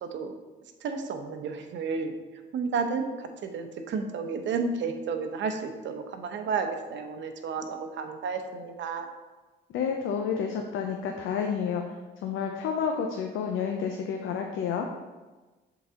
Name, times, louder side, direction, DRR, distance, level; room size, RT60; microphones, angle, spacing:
voice 1, 0.0-0.3 0.8-2.2 2.5-9.1, right 5 dB, 70° right, 6 dB, 0.8 m, -32 dB
voice 2, 9.7-11.8 12.2-14.9, left 6 dB, 85° left, 3 dB, 0.6 m, -30 dB
7.2 x 4.0 x 3.7 m, 1.2 s
cardioid pair, 90°, 20 cm